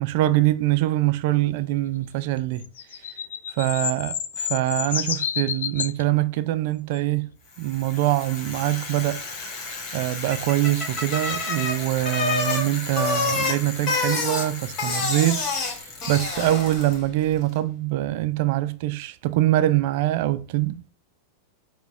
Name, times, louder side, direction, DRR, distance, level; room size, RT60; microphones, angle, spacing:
voice 1, 0.0-2.7 3.6-9.2 9.9-20.9, right 15 dB, 50° right, 0.3 m, -24 dB
sound 1, 2.6-6.0 6.9-7.0, left 9 dB, 60° left, 0.3 m, -29 dB
Bicycle, 7.6-17.1, left 3 dB, 35° left, 1.3 m, -29 dB
5.8 x 2.2 x 3.3 m
figure-of-eight pair, 90°, 0 cm